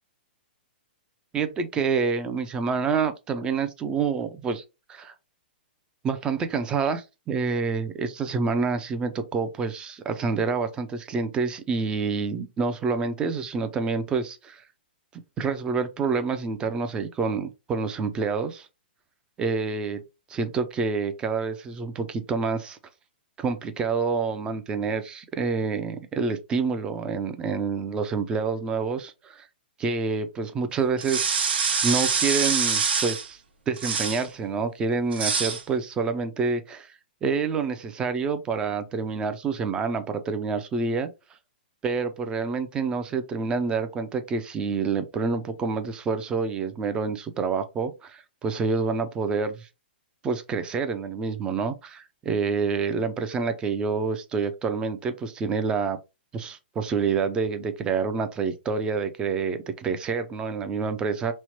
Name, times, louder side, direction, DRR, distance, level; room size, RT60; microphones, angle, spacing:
voice 1, 1.3-4.6 4.9-5.1 6.0-14.6 15.4-18.7 19.4-20.0 20.3-22.8 23.4-29.5 29.8-31.4 31.8-33.4 33.7-36.9 37.2-41.1 41.8-49.7 50.2-56.0 56.3-61.3, right 5 dB, 15° right, 0.3 m, -27 dB
sound 1, 31.0-33.3 33.8-34.3 35.1-35.6, right 5 dB, 70° right, 0.8 m, -25 dB
3.1 x 2.1 x 2.8 m
hypercardioid pair, 145°, 6 cm